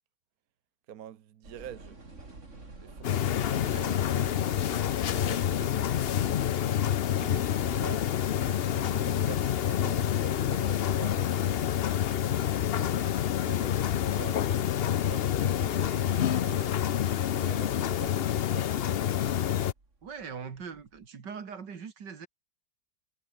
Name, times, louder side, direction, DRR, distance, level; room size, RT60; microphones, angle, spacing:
voice 1, 0.9-2.0 2.8-6.8 7.1-11.7 12.8-16.9 17.3-19.1, right 10 dB, 60° right, 1.3 m, -47 dB
sound 1, 1.4-21.1, right 3 dB, 40° right, 3.9 m, -53 dB
sound 2, 3.0-19.7, left 10 dB, 85° left, 0.5 m, -28 dB
voice 2, 20.0-22.3, right 6 dB, 85° right, 2.7 m, -41 dB
omnidirectional pair, 1.9 m